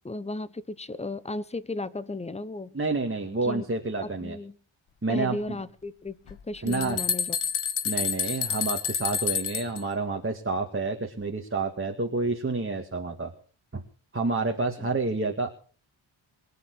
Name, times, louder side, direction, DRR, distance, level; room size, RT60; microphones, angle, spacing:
voice 1, 0.0-2.7 3.4-3.7 4.0-4.6 5.1-7.4 14.8-14.9, left 2 dB, 15° left, 15 dB, 1.0 m, -35 dB
voice 2, 2.7-4.4 5.0-5.4 6.6-7.0 7.8-13.3 13.7-13.8 14.1-15.5, right 3 dB, 25° right, 2 dB, 2.1 m, -29 dB
sound 1, 6.3-9.8, left 7 dB, 80° left, 1.8 m, -29 dB
23.5 x 9.4 x 6.3 m, 0.42 s
wide cardioid pair, 115°, 48 cm